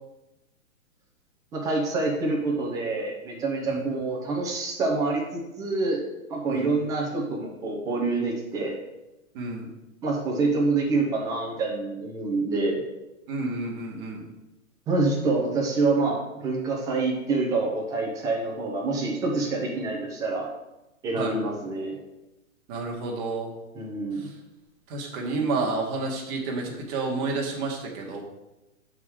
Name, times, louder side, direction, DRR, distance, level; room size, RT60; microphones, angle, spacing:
voice 1, 1.5-6.0 6.3-8.8 10.0-12.8 14.9-20.5 21.0-22.0 23.7-24.3, right 3 dB, 10° right, -1 dB, 0.6 m, -26 dB
voice 2, 9.3-9.7 13.3-14.2 21.1-21.3 22.7-23.5 24.9-28.2, right 3 dB, 25° right, -1 dB, 1.4 m, -30 dB
8.1 x 3.8 x 4.7 m, 0.99 s
hypercardioid pair, 150°, 41 cm